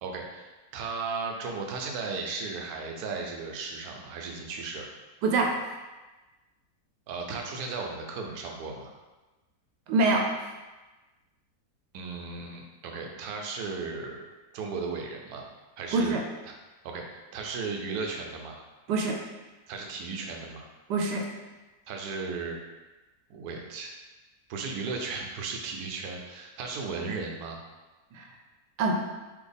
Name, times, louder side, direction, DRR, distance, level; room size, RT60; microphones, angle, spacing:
voice 1, 0.0-4.9 7.1-8.9 11.9-14.3 14.5-15.5 15.8-16.2 16.4-16.5 16.8-18.6 19.7-20.7 21.9-22.6 23.3-23.9 24.5-27.6, right 4 dB, 70° right, 2 dB, 1.1 m, -35 dB
voice 2, 9.9-10.2 15.9-16.2 18.9-19.2 20.9-21.2 28.1-28.2 28.8-28.9, right 3 dB, 90° right, 1 dB, 1.3 m, -24 dB
4.1 x 3.2 x 3.4 m, 1.2 s
omnidirectional pair, 1.7 m